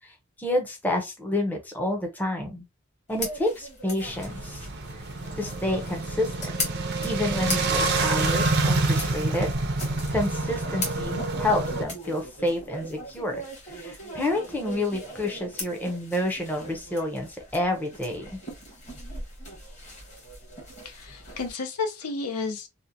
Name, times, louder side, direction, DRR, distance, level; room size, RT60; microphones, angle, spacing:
voice 1, 0.0-2.6 3.1-4.7 5.4-6.5 7.0-9.5 10.1-13.4 13.7-18.4, left 1 dB, 10° left, 0.5 m, -29 dB
sound 1, 3.1-21.5, left 1 dB, 30° left, 1.0 m, -39 dB
sound 2, 4.0-11.8, right 3 dB, 45° right, 0.5 m, -27 dB
voice 2, 20.8-22.7, left 4 dB, 85° left, 0.6 m, -32 dB
2.8 x 2.1 x 2.5 m
head